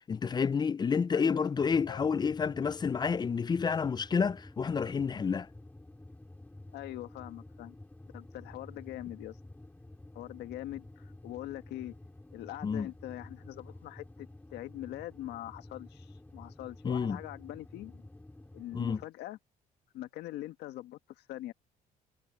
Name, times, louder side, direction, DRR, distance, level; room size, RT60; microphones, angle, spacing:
voice 1, 0.1-5.5 12.6-12.9 16.8-17.2 18.7-19.0, left 6 dB, 25° left, 0.5 m, -29 dB
voice 2, 1.1-1.5 1.9-2.2 6.7-7.8 8.1-9.4 10.2-12.0 12.3-18.1 18.5-19.4 19.9-21.5, left 14 dB, 80° left, 1.6 m, -43 dB
sound 1, 1.5-19.0, left 2 dB, 10° left, 4.3 m, -51 dB
cardioid pair, 110°, 17 cm